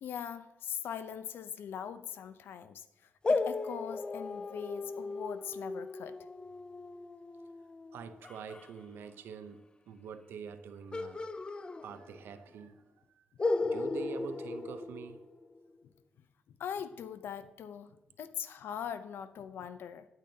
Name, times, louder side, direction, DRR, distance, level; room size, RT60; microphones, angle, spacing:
voice 1, 0.0-6.2 15.8-15.9 16.5-20.1, left 8 dB, 75° left, 0.6 m, -41 dB
sound 1, 3.2-8.7 10.9-12.4 12.6-12.7 13.4-15.6, left 3 dB, 25° left, 0.5 m, -36 dB
voice 2, 7.9-11.2 11.8-12.8 13.1-13.2 13.6-15.2, right 7 dB, 80° right, 0.7 m, -45 dB
10.0 x 9.0 x 2.8 m
cardioid pair, 90°, 4 cm